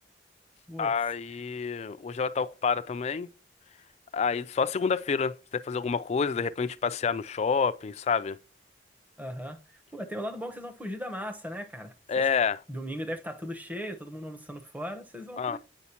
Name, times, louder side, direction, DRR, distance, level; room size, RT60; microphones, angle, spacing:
voice 1, 0.8-3.3 4.1-8.4 12.1-12.6 15.4-15.6, left 5 dB, 35° left, 0.3 m, -28 dB
voice 2, 9.2-11.9 12.7-15.6, equal, 10° right, 0.8 m, -37 dB
8.2 x 5.0 x 2.8 m
head